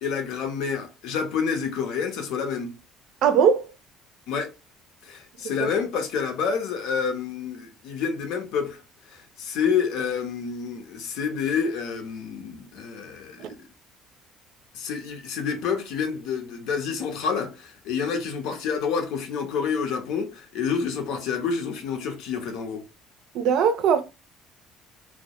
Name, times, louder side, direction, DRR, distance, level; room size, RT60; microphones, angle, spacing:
voice 1, 0.0-2.7 4.3-4.5 5.0-8.8 9.1-13.5 14.7-22.8, left 6 dB, 75° left, 0.7 m, -28 dB
voice 2, 3.2-3.7 5.6-5.7 13.4-13.5 23.3-24.0, right 7 dB, 70° right, 0.4 m, -20 dB
2.2 x 2.0 x 2.8 m
cardioid pair, 115°, 0 cm